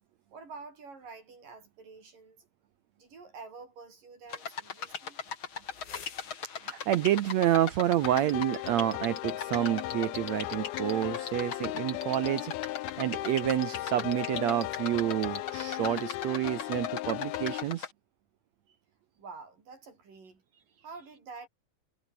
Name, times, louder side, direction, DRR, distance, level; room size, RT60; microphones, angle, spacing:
voice 1, 0.3-2.4 3.0-5.2 19.2-20.4 20.8-21.5, right 4 dB, 60° right, 7.6 m, -48 dB
sound 1, 4.3-17.9, left 6 dB, 40° left, 2.5 m, -40 dB
sound 2, 5.5-15.2, left 7 dB, 75° left, 5.6 m, -57 dB
voice 2, 6.6-12.5 13.0-17.9, right 12 dB, 80° right, 1.5 m, -29 dB
sound 3, 8.0-17.6, left 17 dB, 90° left, 2.8 m, -36 dB
omnidirectional pair, 4.2 m